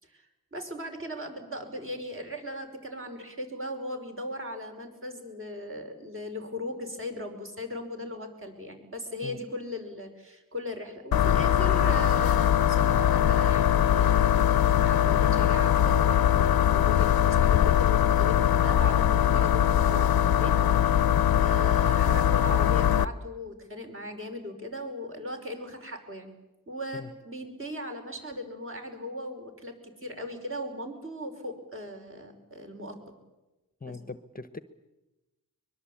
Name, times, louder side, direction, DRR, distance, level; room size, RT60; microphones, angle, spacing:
voice 1, 0.5-26.3 26.7-33.2 33.8-34.0, left 1 dB, 35° right, 4 dB, 5.3 m, -38 dB
sound 1, 11.1-23.1, left 10 dB, 85° left, 0.8 m, -22 dB
voice 2, 33.8-34.6, left 4 dB, 25° left, 13 dB, 1.0 m, -40 dB
23.5 x 22.5 x 8.6 m, 1.0 s
wide cardioid pair, 95°, 35 cm